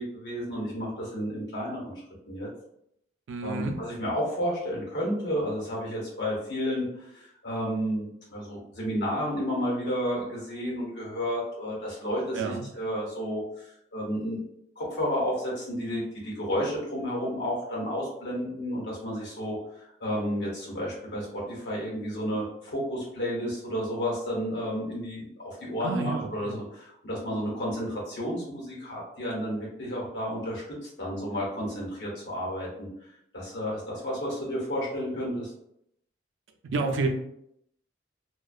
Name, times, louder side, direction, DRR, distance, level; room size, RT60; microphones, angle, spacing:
voice 1, 0.0-1.9 2.3-2.5 3.4-14.4 14.8-32.9 33.3-35.5, equal, 65° left, -4 dB, 0.9 m, -31 dB
voice 2, 3.3-3.8 12.3-12.7 25.8-26.6 36.7-37.1, right 3 dB, 80° right, 4 dB, 0.4 m, -29 dB
2.4 x 2.2 x 2.3 m, 0.75 s
head